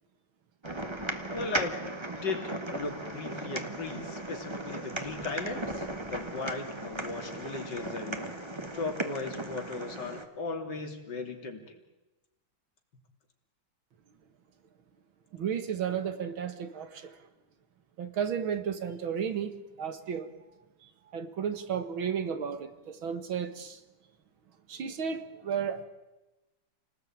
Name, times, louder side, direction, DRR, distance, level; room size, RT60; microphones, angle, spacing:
sound 1, 0.6-10.2, right 1 dB, 15° right, 1.7 m, -37 dB
voice 1, 1.3-1.8 2.2-8.3 8.7-11.8, left 4 dB, 60° left, 3 dB, 3.7 m, -37 dB
voice 2, 15.3-17.2 18.0-20.3 21.1-23.8 24.7-25.9, right 7 dB, 85° right, 9 dB, 2.5 m, -33 dB
29.5 x 19.5 x 8.9 m, 1.1 s
omnidirectional pair, 2.1 m